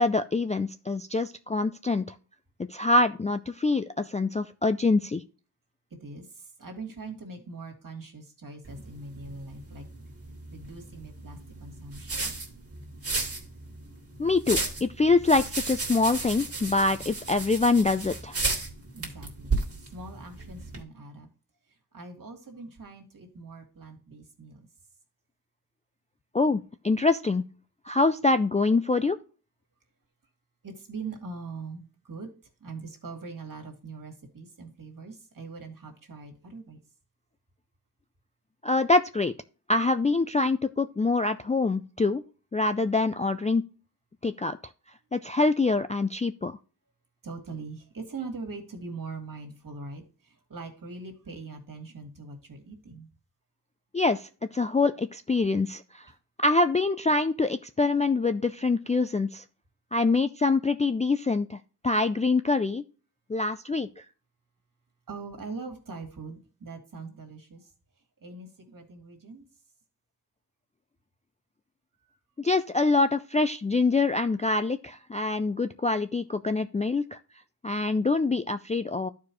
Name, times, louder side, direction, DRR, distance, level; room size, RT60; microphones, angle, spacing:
voice 1, 0.0-2.0 2.7-5.2 14.2-18.4 26.3-27.4 27.9-29.2 38.6-39.3 39.7-42.2 42.5-43.6 44.2-44.6 45.1-46.6 53.9-56.1 56.4-59.4 59.9-61.6 61.8-62.8 63.3-63.9 72.4-77.2 77.6-79.1, left 3 dB, 20° left, 0.3 m, -25 dB
voice 2, 6.0-9.9 10.5-12.3 18.9-21.3 21.7-24.7 30.6-32.3 32.6-36.8 47.2-53.1 65.1-67.7 68.2-69.5, right 4 dB, 50° right, 2.3 m, -42 dB
sound 1, 8.6-20.8, right 3 dB, 35° right, 2.1 m, -34 dB
13.5 x 4.8 x 3.0 m
wide cardioid pair, 115°, 41 cm